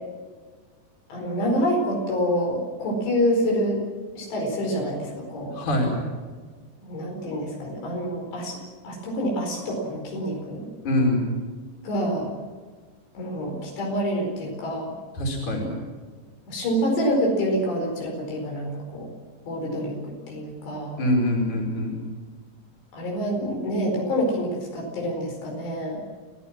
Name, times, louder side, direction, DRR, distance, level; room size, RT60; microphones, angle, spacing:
voice 1, 1.1-3.8 4.2-5.6 6.8-8.6 8.8-10.7 11.8-12.3 13.1-14.9 16.5-19.1 19.5-21.0 22.9-26.0, equal, 80° left, 0 dB, 6.8 m, -27 dB
voice 2, 5.5-5.9 10.8-11.2 15.2-15.7 21.0-22.0, left 1 dB, 45° left, 0 dB, 6.4 m, -24 dB
29.0 x 16.5 x 7.5 m, 1.5 s
omnidirectional pair, 4.9 m